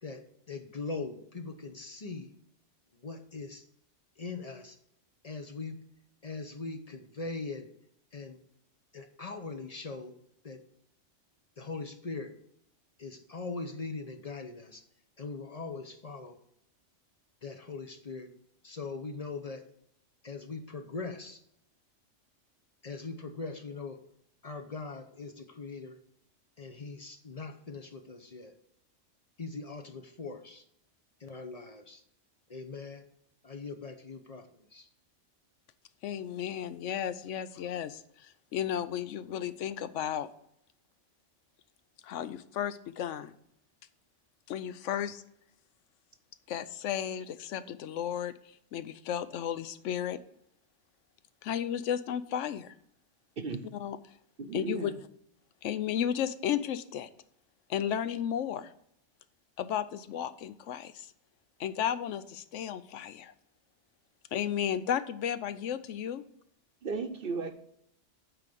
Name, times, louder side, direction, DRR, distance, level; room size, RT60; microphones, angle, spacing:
voice 1, 0.0-2.3 2.9-3.6 4.2-4.8 5.2-5.8 6.2-7.7 8.1-8.4 8.9-10.1 10.4-10.6 11.6-12.4 13.0-14.8 15.2-16.4 17.4-18.3 18.6-19.7 20.2-21.4 22.8-24.0 24.4-26.0 26.6-28.5 29.4-30.6 31.2-32.0 32.5-33.1 33.4-34.9, left 3 dB, 35° left, 6 dB, 0.7 m, -41 dB
voice 2, 36.0-40.3 42.0-43.3 44.5-45.2 46.5-48.3 48.7-50.2 51.4-52.7 53.8-54.0 54.5-54.9 55.6-57.1 57.7-58.7 59.6-61.1 61.6-63.3 64.3-66.2, left 9 dB, 80° left, 13 dB, 0.9 m, -33 dB
voice 3, 53.4-53.7 54.4-55.0 66.8-67.5, right 4 dB, 55° right, 9 dB, 0.9 m, -35 dB
9.0 x 3.9 x 6.7 m, 0.73 s
omnidirectional pair, 1.3 m